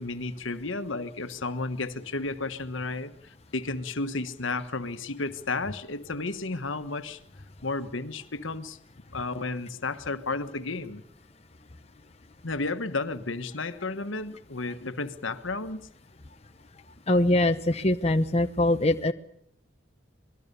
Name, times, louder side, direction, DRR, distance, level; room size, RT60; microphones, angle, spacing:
voice 1, 0.0-7.2 7.6-8.8 9.1-11.0 12.4-15.9, left 3 dB, 80° left, 10 dB, 1.4 m, -32 dB
voice 2, 17.1-19.1, left 1 dB, 30° left, 7 dB, 0.9 m, -23 dB
26.5 x 20.0 x 6.9 m, 0.68 s
head